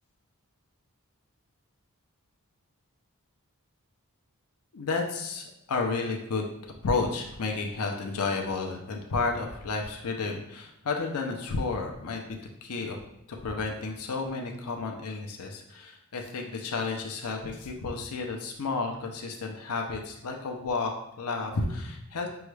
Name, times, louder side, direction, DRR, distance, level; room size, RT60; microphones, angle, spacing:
voice 1, 4.7-6.4 6.8-12.2 12.6-13.0 13.3-22.3, left 4 dB, 80° left, 2 dB, 0.6 m, -31 dB
6.2 x 2.3 x 3.2 m, 0.80 s
head